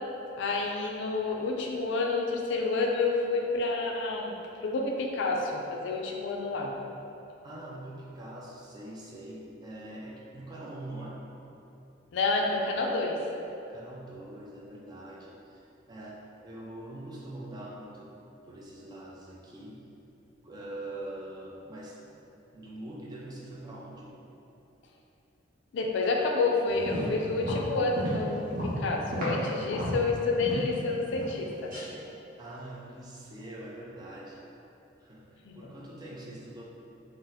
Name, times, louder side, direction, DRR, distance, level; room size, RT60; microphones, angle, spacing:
voice 1, 0.4-6.7 12.1-13.2 25.7-31.7 35.4-35.7, left 3 dB, 65° left, 1 dB, 0.3 m, -29 dB
voice 2, 7.4-11.3 13.7-18.2 18.5-19.9 20.4-22.0 22.5-24.2 32.4-34.4 35.0-35.3 35.5-36.6, right 1 dB, 20° right, -4 dB, 0.4 m, -43 dB
sound 1, 26.7-29.4 29.7-30.7 31.1-31.4 31.7-31.9, equal, 45° right, 0.7 m, -33 dB
2.7 x 2.0 x 3.8 m, 2.9 s
head